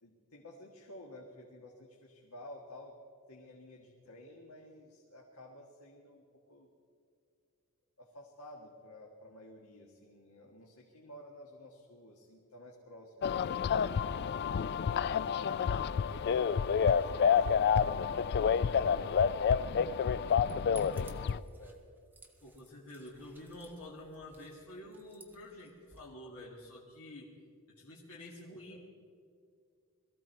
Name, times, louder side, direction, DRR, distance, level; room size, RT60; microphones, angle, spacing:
voice 1, 0.0-3.0 3.3-6.7 8.0-13.6 15.0-19.1 21.1-21.8 26.2-26.3 28.5-28.8, left 1 dB, 85° left, -1 dB, 1.7 m, -53 dB
sound 1, 13.2-21.4, left 7 dB, 50° left, 0.3 m, -29 dB
sound 2, 20.1-26.0, right 2 dB, 10° right, 1.2 m, -59 dB
voice 2, 22.4-27.3 27.8-28.8, left 1 dB, 65° left, -5 dB, 2.2 m, -49 dB
21.5 x 15.0 x 4.5 m, 2.4 s
head